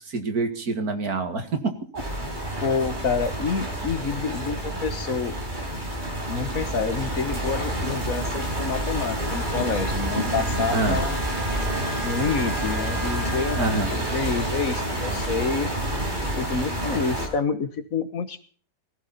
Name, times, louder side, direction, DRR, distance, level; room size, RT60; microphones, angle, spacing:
voice 1, 0.0-2.0 10.7-11.0 13.6-13.9, right 3 dB, 65° right, 7 dB, 2.5 m, -26 dB
sound 1, 2.0-17.3, right 1 dB, 30° right, 4.5 m, -28 dB
voice 2, 2.6-5.4 6.3-11.2 12.0-13.6 13.9-15.7 16.3-18.4, left 5 dB, 60° left, 12 dB, 1.7 m, -28 dB
Wind instrument woodwind instrument, 8.1-13.8, right 2 dB, ahead, 3.9 m, -39 dB
18.0 x 15.5 x 4.2 m, 0.43 s
omnidirectional pair, 1.7 m